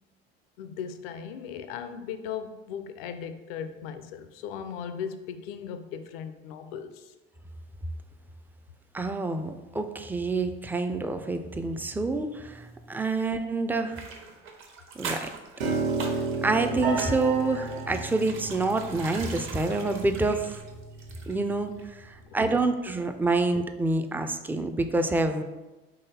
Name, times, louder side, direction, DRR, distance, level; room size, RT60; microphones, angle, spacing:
voice 1, 0.6-7.1 22.3-22.4, left 7 dB, 80° left, 0.5 m, -37 dB
voice 2, 8.9-14.0 15.0-15.3 16.4-20.6 21.3-21.7 22.1-25.4, right 3 dB, 5° right, 0.3 m, -27 dB
sound 1, 13.9-21.5 21.8-21.9, right 4 dB, 45° right, 0.9 m, -41 dB
Piano, 15.6-21.8, right 4 dB, 80° right, 0.9 m, -33 dB
3.9 x 3.2 x 4.1 m
hypercardioid pair, 80°, 29 cm